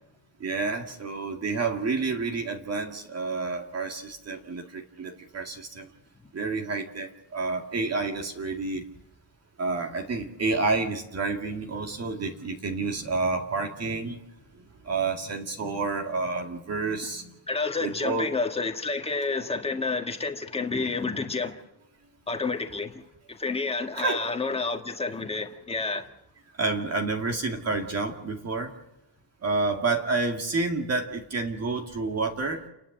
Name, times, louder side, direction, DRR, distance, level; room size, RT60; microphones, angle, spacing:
voice 1, 0.4-5.9 6.3-8.8 9.6-14.2 14.8-17.4 17.8-18.3 24.0-24.3 26.6-28.7 29.4-32.6, right 3 dB, 35° right, 3 dB, 2.2 m, -29 dB
voice 2, 17.5-21.6 22.3-23.0 23.3-26.1, left 3 dB, 15° left, 5 dB, 1.7 m, -29 dB
30.0 x 11.5 x 7.8 m, 0.89 s
cardioid pair, 175°, 42 cm